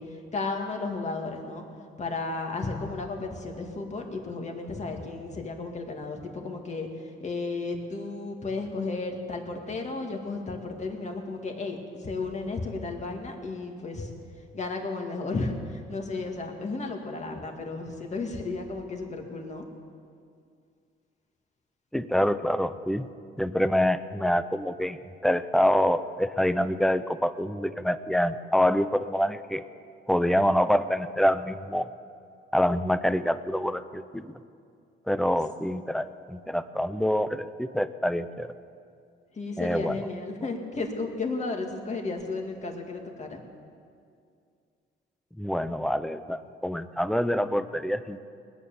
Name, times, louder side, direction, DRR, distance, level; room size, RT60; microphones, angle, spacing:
voice 1, 0.0-1.6 2.0-14.1 14.5-19.7 39.3-43.4, left 3 dB, 35° left, 2 dB, 2.3 m, -33 dB
voice 2, 21.9-23.1 23.4-25.0 25.2-29.6 30.1-31.9 32.5-34.3 35.1-38.5 39.6-40.1 45.4-48.2, equal, ahead, 12 dB, 0.6 m, -26 dB
20.5 x 9.2 x 7.1 m, 2.3 s
cardioid pair, 90°, 20 cm